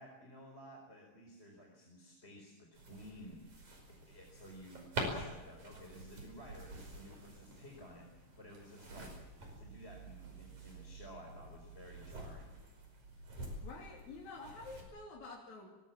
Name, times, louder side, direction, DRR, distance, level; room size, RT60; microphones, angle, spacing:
voice 1, 0.0-9.2 9.5-12.5, equal, 15° left, 0 dB, 4.3 m, -54 dB
sound 1, 2.7-14.8, right 1 dB, 60° right, 6.6 m, -47 dB
voice 2, 13.4-15.7, left 3 dB, 60° left, -2 dB, 4.2 m, -49 dB
23.5 x 20.5 x 7.5 m, 1.2 s
omnidirectional pair, 3.9 m